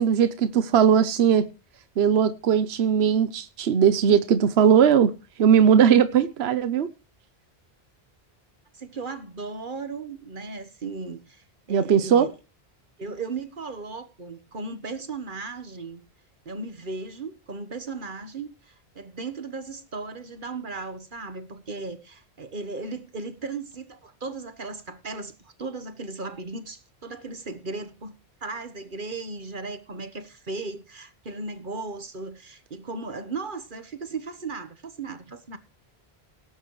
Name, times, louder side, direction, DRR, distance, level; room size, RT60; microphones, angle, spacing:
voice 1, 0.0-1.4 2.0-5.1 5.4-6.9 11.7-12.3, right 8 dB, 75° right, 1.0 m, -19 dB
voice 2, 8.7-12.3 13.0-16.0 16.4-28.1 28.4-35.6, right 3 dB, 50° right, 1.4 m, -36 dB
18.0 x 9.6 x 3.1 m
omnidirectional pair, 1.1 m